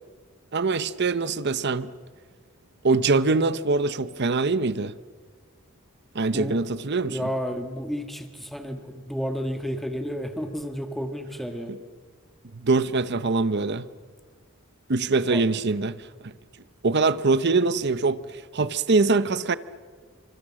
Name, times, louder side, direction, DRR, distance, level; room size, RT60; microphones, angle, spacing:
voice 1, 0.5-1.9 2.8-4.9 6.1-7.3 12.5-13.9 14.9-16.3 16.8-19.6, right 3 dB, 55° right, 0.8 m, -23 dB
voice 2, 7.0-11.7 15.2-15.6, equal, ahead, 1.6 m, -31 dB
28.5 x 25.0 x 7.6 m
head